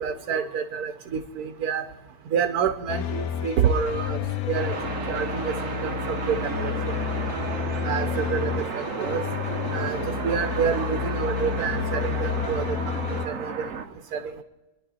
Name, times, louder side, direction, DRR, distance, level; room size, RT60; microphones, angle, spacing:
voice 1, 0.0-1.9 2.3-4.2 4.5-4.7 5.1-5.5 5.8-6.7 7.8-9.2 9.7-12.7 13.1-13.7 14.1-14.4, right 7 dB, 80° right, 8 dB, 1.3 m, -28 dB
sound 1, 2.9-13.3, left 9 dB, 75° left, 1.3 m, -30 dB
sound 2, 4.5-13.9, right 6 dB, 65° right, 1.2 m, -33 dB
26.5 x 11.0 x 4.1 m, 1.1 s
omnidirectional pair, 1.6 m